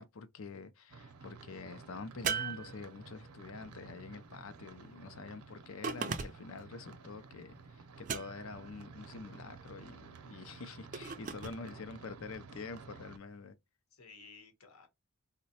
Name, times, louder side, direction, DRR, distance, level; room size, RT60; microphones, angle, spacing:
voice 1, 0.0-13.6, left 4 dB, 65° left, 0.5 m, -46 dB
sound 1, 0.9-13.2, right 4 dB, 85° right, 0.6 m, -53 dB
sound 2, 2.2-3.3 5.8-6.6 8.0-8.7 10.9-11.6, right 6 dB, 35° right, 0.3 m, -38 dB
voice 2, 11.7-12.4 13.9-14.9, left 4 dB, 80° left, 1.0 m, -57 dB
3.8 x 2.1 x 2.8 m
head